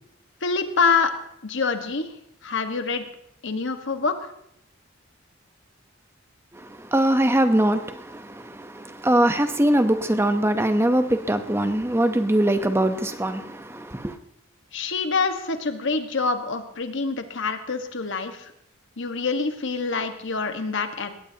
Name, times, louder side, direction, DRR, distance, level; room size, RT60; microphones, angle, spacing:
voice 1, 0.4-1.1 1.4-2.2 2.4-3.1 3.4-4.3 14.7-18.5 19.0-21.1, left 4 dB, 65° left, 1.5 m, -26 dB
voice 2, 6.5-14.2, right 1 dB, 10° right, 0.9 m, -22 dB
20.5 x 16.0 x 2.9 m
head